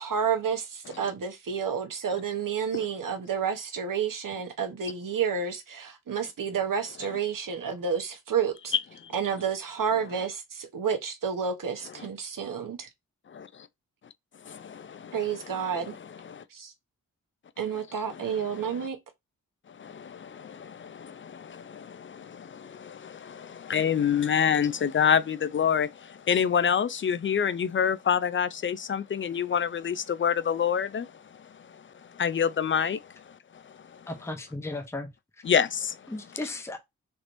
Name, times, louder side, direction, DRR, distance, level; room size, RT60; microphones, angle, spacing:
voice 1, 0.0-8.7 9.1-12.9 15.1-16.0 16.5-16.7 17.6-19.0, right 7 dB, 65° right, 1.0 m, -30 dB
voice 2, 8.7-9.1 13.3-13.7 14.4-15.8 16.2-16.4 18.1-18.9 19.7-34.1 35.4-36.0, left 7 dB, 35° left, 0.4 m, -28 dB
voice 3, 34.1-35.1 36.1-36.8, left 2 dB, 10° left, 0.8 m, -35 dB
3.3 x 2.9 x 2.5 m
cardioid pair, 45°, 35 cm